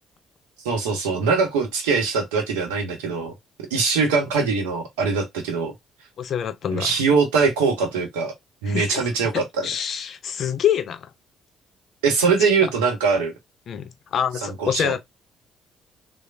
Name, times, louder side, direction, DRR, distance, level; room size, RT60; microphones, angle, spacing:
voice 1, 0.6-3.3 3.7-5.7 6.7-8.3 8.6-9.7 12.0-13.3 14.4-14.9, right 5 dB, 85° right, 0.7 m, -22 dB
voice 2, 6.2-7.0 8.7-9.1 9.6-11.1 12.4-12.5 13.7-15.0, left 9 dB, 55° left, 0.4 m, -26 dB
3.1 x 2.0 x 2.4 m
hypercardioid pair, 50°, 0 cm